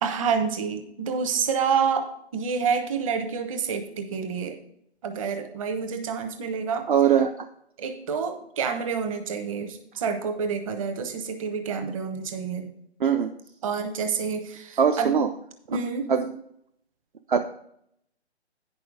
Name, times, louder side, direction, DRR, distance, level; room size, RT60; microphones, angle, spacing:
voice 1, 0.0-2.1 2.3-4.5 5.0-6.9 7.8-12.7 13.6-15.1 15.7-16.1, right 6 dB, 30° right, 6 dB, 1.2 m, -28 dB
voice 2, 6.9-7.5 13.0-13.3 14.8-15.3 15.7-15.8 16.1-16.3 17.3-17.4, right 7 dB, 50° right, 6 dB, 0.7 m, -21 dB
9.5 x 6.1 x 4.9 m, 0.71 s
figure-of-eight pair, 150°, 33 cm